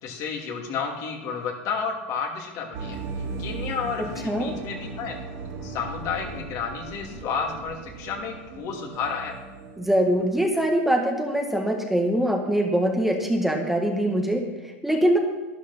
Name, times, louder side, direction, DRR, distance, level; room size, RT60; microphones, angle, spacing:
voice 1, 0.0-3.0 3.4-5.2 5.6-9.4, left 6 dB, 50° left, 2 dB, 2.5 m, -31 dB
sound 1, 2.7-10.5, right 4 dB, 55° right, 2.6 m, -37 dB
voice 2, 4.0-4.6 9.8-15.2, right 1 dB, 5° right, 2 dB, 1.7 m, -23 dB
12.0 x 10.0 x 5.7 m, 1.2 s
hypercardioid pair, 110°, 7 cm